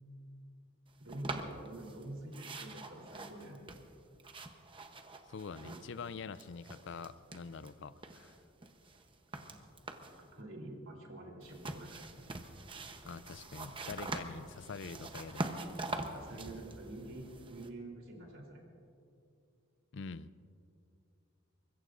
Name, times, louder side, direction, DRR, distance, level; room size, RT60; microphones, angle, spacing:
voice 1, 1.0-3.6 5.6-5.8 9.4-9.6 10.0-12.0 16.1-18.6, right 1 dB, 65° right, 0 dB, 3.5 m, -47 dB
sound 1, 1.1-2.0 2.3-6.1 6.3-7.7 8.0-10.2 11.4-17.7, right 2 dB, 25° right, 0.9 m, -44 dB
voice 2, 5.3-8.4 13.1-15.6 19.9-20.3, left 5 dB, 55° left, 15 dB, 0.4 m, -45 dB
24.0 x 21.5 x 2.6 m, 2.6 s
head